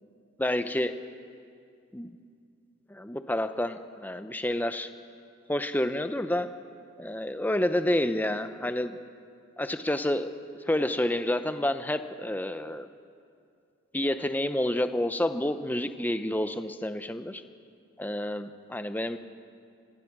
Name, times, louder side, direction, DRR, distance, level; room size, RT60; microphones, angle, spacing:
voice 1, 0.4-1.0 1.9-2.1 2.9-4.9 5.5-6.5 7.0-9.0 9.6-10.3 10.7-12.9 13.9-17.4 18.0-19.2, left 1 dB, 10° left, 9 dB, 0.7 m, -29 dB
28.5 x 16.0 x 6.1 m, 2.4 s
head